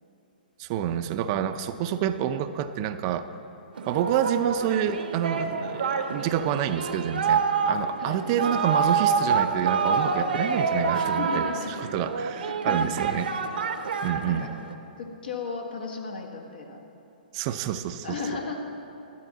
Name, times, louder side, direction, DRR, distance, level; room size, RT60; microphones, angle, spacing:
voice 1, 0.6-3.3 3.9-13.3 14.0-14.5 17.3-18.4, right 10 dB, 40° right, 10 dB, 0.5 m, -28 dB
Singing, 3.8-14.7, right 5 dB, 75° right, 0.9 m, -27 dB
voice 2, 10.9-11.7 12.6-13.0 14.2-14.5 15.0-16.8 18.0-18.6, left 4 dB, 75° left, 2 dB, 1.7 m, -35 dB
12.5 x 11.5 x 4.0 m, 2.8 s
hypercardioid pair, 130°, 5 cm